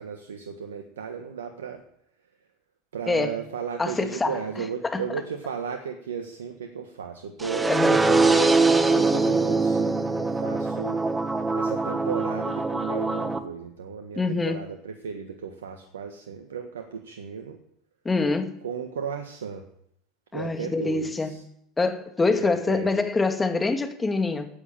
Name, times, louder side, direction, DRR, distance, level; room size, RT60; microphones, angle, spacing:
voice 1, 0.0-1.8 2.9-11.0 11.5-17.6 18.6-19.7 20.3-21.4 22.4-22.9, right 6 dB, 90° right, 1.5 m, -35 dB
voice 2, 3.1-3.4 3.8-4.4 4.8-5.0 7.7-8.0 14.2-14.6 18.0-18.6 20.3-21.4 21.8-24.5, left 3 dB, 15° left, 2.2 m, -25 dB
sound 1, 7.4-13.4, right 3 dB, 15° right, 1.6 m, -23 dB
15.0 x 9.0 x 7.5 m
hypercardioid pair, 90°, 0 cm